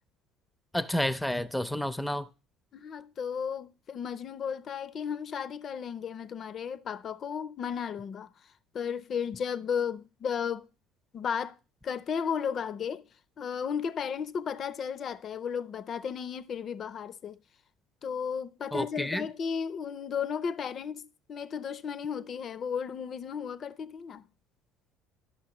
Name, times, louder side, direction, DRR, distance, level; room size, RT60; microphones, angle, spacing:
voice 1, 0.7-2.3 18.7-19.3, left 1 dB, 5° left, 0.6 m, -30 dB
voice 2, 2.7-8.3 8.7-10.7 11.1-11.6 11.8-13.1 13.4-17.4 18.0-24.2, left 7 dB, 50° left, 0.5 m, -34 dB
11.0 x 5.6 x 3.0 m
hypercardioid pair, 70°, 0 cm